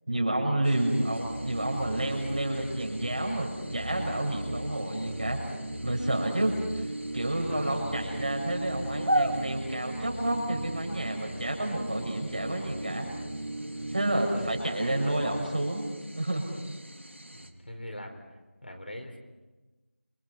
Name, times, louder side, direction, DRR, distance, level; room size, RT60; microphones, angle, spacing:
voice 1, 0.1-5.4 5.8-13.1 13.9-15.9 16.1-16.4, right 1 dB, 40° right, 2 dB, 6.9 m, -30 dB
sound 1, 0.6-17.5, right 1 dB, 65° right, 3.3 m, -39 dB
sound 2, 0.9-15.4, right 1 dB, 15° right, 1.5 m, -38 dB
voice 2, 7.5-7.9 14.3-14.4 15.0-15.2 17.3-18.2 18.6-19.2, left 1 dB, 50° left, 3 dB, 4.9 m, -42 dB
29.5 x 26.5 x 5.9 m, 1.2 s
figure-of-eight pair, 175°, 7 cm